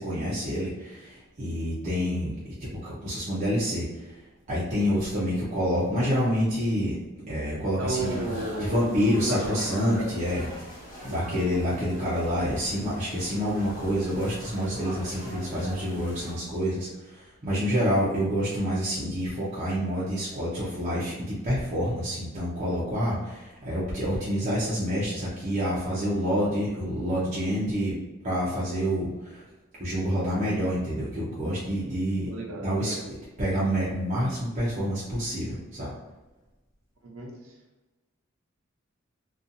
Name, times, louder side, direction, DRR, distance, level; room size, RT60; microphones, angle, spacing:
voice 1, 0.0-2.3 2.6-4.2 4.5-7.0 7.3-27.9 28.2-29.4 29.8-32.3 32.6-32.9 33.4-35.9, equal, 35° right, -8 dB, 0.6 m, -28 dB
voice 2, 7.8-8.8 9.2-9.6 10.0-10.1 32.3-33.0 37.1-37.5, right 2 dB, 90° right, -1 dB, 0.7 m, -33 dB
sound 1, 8.0-16.3, equal, 45° left, 1.1 m, -42 dB
2.6 x 2.3 x 2.5 m, 1.1 s
head